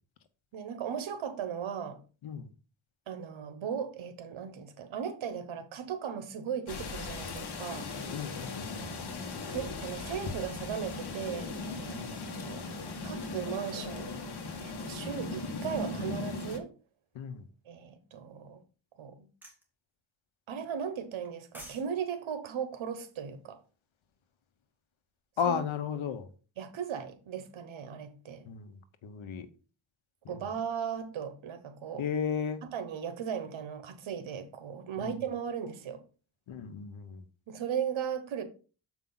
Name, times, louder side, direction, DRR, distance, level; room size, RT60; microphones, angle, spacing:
voice 1, 0.5-2.0 3.1-7.9 9.5-12.7 13.0-14.2 14.6-16.7 17.6-18.6 19.0-19.3 20.5-23.6 25.4-25.6 26.6-28.4 30.3-32.1 32.6-36.0 37.5-38.4, right 8 dB, 85° right, 1.3 m, -37 dB
sound 1, 6.7-16.6, left 3 dB, 55° left, 1.4 m, -38 dB
voice 2, 8.1-8.9 12.0-12.2 17.1-17.4 25.4-26.3 28.5-29.5 30.2-30.4 32.0-32.6 35.0-35.1 36.5-37.2, left 7 dB, 85° left, 1.1 m, -34 dB
sound 2, 19.4-19.6 21.2-21.9 22.2-22.3, right 1 dB, 5° right, 2.4 m, -48 dB
7.3 x 5.0 x 4.0 m
cardioid pair, 110°, 47 cm